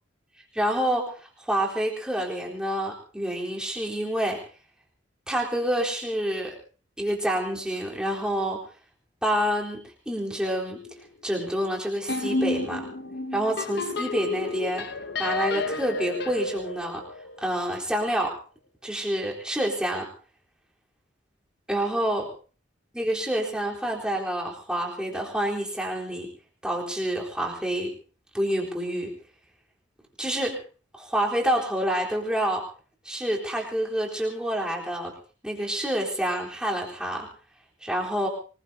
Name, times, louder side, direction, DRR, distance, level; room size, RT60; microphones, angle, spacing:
voice 1, 0.5-4.4 5.3-6.6 7.0-8.6 9.2-10.8 11.2-12.9 13.3-14.9 15.2-17.0 17.4-18.4 18.8-20.1 21.7-22.3 22.9-26.3 26.6-27.9 28.3-29.1 30.2-30.6 30.9-32.7 33.0-35.1 35.4-37.3 37.8-38.3, right 1 dB, 5° right, -2 dB, 3.9 m, -28 dB
sound 1, 10.7-11.1 11.3-11.6 12.1-17.8, left 3 dB, 60° left, 1.0 m, -32 dB
24.5 x 21.0 x 2.8 m, 0.39 s
head